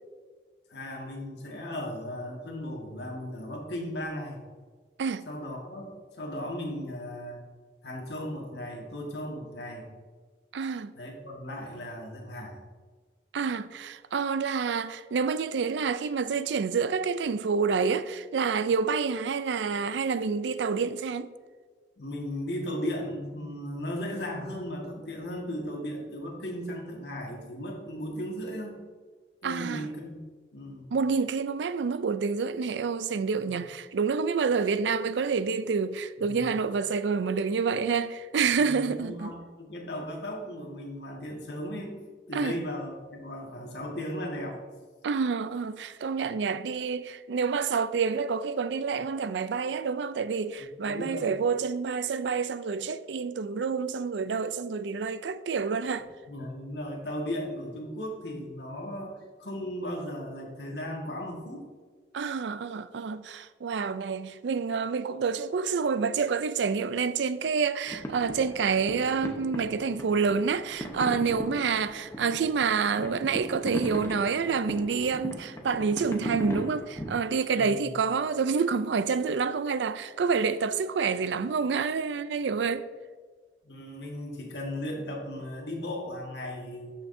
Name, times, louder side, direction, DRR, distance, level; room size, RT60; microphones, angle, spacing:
voice 1, 0.7-4.4 5.3-5.9 6.2-7.4 7.8-9.9 11.0-12.6 22.0-28.8 29.4-30.3 30.5-30.9 33.3-33.4 36.2-36.5 38.7-41.9 42.3-44.6 50.9-51.3 56.3-61.6 77.6-77.9 83.6-86.9, equal, 75° left, 1.7 m, -36 dB
voice 2, 10.5-10.9 13.3-21.3 29.4-29.9 30.9-39.3 42.3-42.6 45.0-56.1 62.1-82.9, right 5 dB, 90° right, 0.4 m, -28 dB
sound 1, 67.9-77.1, equal, 15° left, 0.8 m, -38 dB
12.5 x 5.8 x 2.7 m
head